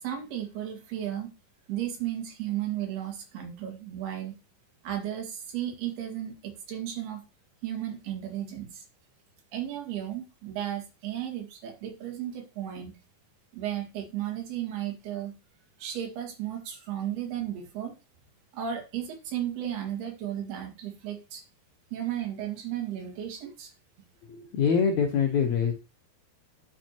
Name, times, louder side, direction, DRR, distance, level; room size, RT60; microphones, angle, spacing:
voice 1, 0.0-1.3 1.7-4.4 4.8-7.2 7.6-8.9 9.5-12.9 13.5-15.4 15.8-17.9 18.5-21.4 21.9-23.7, right 11 dB, 70° right, 3 dB, 4.0 m, -34 dB
voice 2, 24.3-25.7, left 6 dB, 70° left, 4 dB, 1.8 m, -24 dB
10.0 x 7.5 x 3.0 m, 0.30 s
omnidirectional pair, 4.7 m